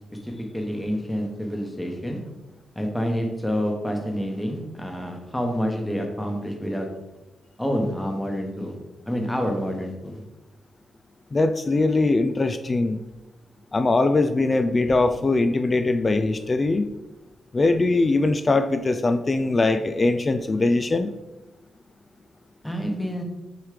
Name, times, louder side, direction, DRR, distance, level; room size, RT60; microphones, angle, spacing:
voice 1, 0.2-2.2 2.7-6.9 7.6-8.8 9.1-10.2 22.6-23.2, equal, 5° left, 2 dB, 1.1 m, -28 dB
voice 2, 11.3-13.0 13.7-16.9 17.5-21.1, left 2 dB, 25° left, 10 dB, 0.3 m, -21 dB
6.6 x 3.2 x 5.0 m, 1.0 s
wide cardioid pair, 135°, 0 cm